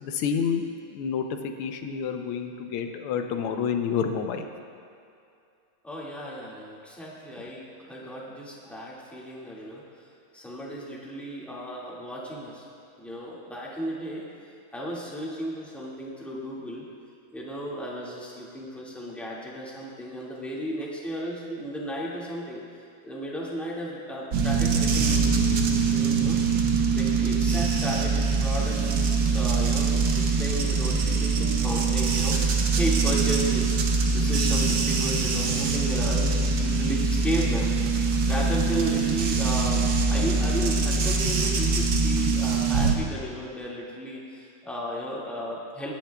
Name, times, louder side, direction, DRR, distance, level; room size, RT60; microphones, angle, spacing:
voice 1, 0.0-4.5, left 7 dB, 85° left, 6 dB, 1.7 m, -29 dB
voice 2, 5.8-9.9 10.3-12.6 13.0-14.2 14.7-16.8 17.3-22.6 23.0-26.6 26.9-33.7 34.1-39.8 40.1-45.9, equal, ahead, -6 dB, 1.6 m, -34 dB
sound 1, 24.3-43.0, right 4 dB, 55° right, 1.2 m, -23 dB
21.5 x 10.5 x 2.3 m, 2.5 s
omnidirectional pair, 2.4 m